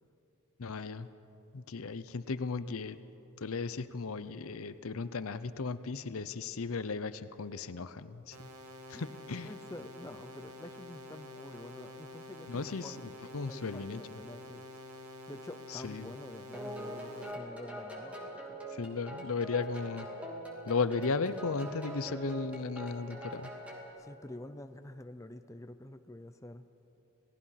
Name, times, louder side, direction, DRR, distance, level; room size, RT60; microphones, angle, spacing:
voice 1, 0.6-1.1 1.5-3.0 3.4-8.5 8.9-9.5 12.5-14.2 15.7-16.1 18.7-20.1 20.7-23.5, left 4 dB, 70° left, 13 dB, 0.7 m, -36 dB
sound 1, 8.3-17.3, left 1 dB, 85° right, 1.9 m, -48 dB
voice 2, 9.4-13.0 13.5-14.6 15.3-18.6 24.0-26.7, left 1 dB, 15° left, 8 dB, 0.6 m, -48 dB
sound 2, 16.5-23.9, right 1 dB, 5° right, 2.5 m, -43 dB
28.0 x 18.0 x 5.8 m, 2.9 s
head